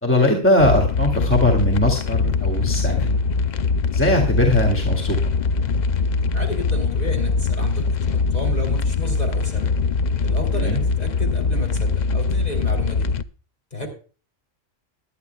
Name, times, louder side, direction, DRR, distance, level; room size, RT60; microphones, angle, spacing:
voice 1, 0.0-3.1 3.9-5.2 10.5-10.8, left 1 dB, 10° left, 2 dB, 2.4 m, -20 dB
sound 1, 0.6-13.2, left 4 dB, 50° left, 0.5 m, -22 dB
voice 2, 6.3-9.7 10.2-13.1 13.7-13.9, left 2 dB, 30° left, 2 dB, 3.5 m, -32 dB
21.0 x 10.5 x 2.3 m, 0.38 s
omnidirectional pair, 1.3 m